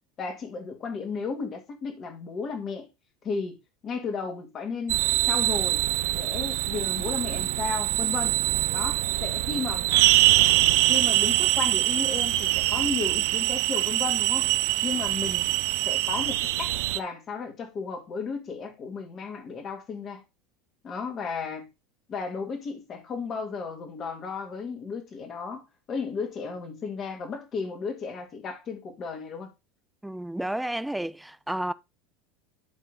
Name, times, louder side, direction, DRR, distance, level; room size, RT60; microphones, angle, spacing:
voice 1, 0.2-2.9 3.2-3.6 3.8-5.8 6.1-8.3 8.7-9.9 10.9-14.5 14.8-15.6 15.9-20.2 20.8-21.7 22.1-29.5, left 5 dB, 40° left, 2.1 m, -34 dB
sound 1, 4.9-17.0, right 16 dB, 70° right, 0.5 m, -24 dB
voice 2, 30.0-31.7, right 1 dB, 5° right, 0.5 m, -31 dB
10.5 x 3.8 x 3.8 m
hypercardioid pair, 80°, 0 cm